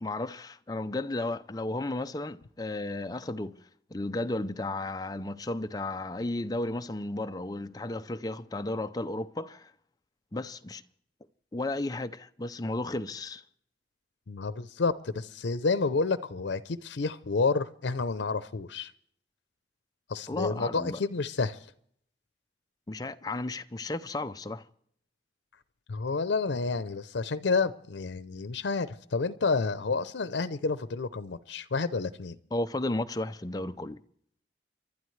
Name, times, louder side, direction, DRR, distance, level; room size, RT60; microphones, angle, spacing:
voice 1, 0.0-3.6 3.9-9.7 10.3-10.8 11.5-13.4 20.3-21.0 22.9-24.6 32.5-34.0, left 2 dB, 20° left, 0.5 m, -33 dB
voice 2, 14.3-18.9 20.1-21.6 25.9-32.4, left 4 dB, 90° left, 0.6 m, -30 dB
29.5 x 12.0 x 3.2 m
head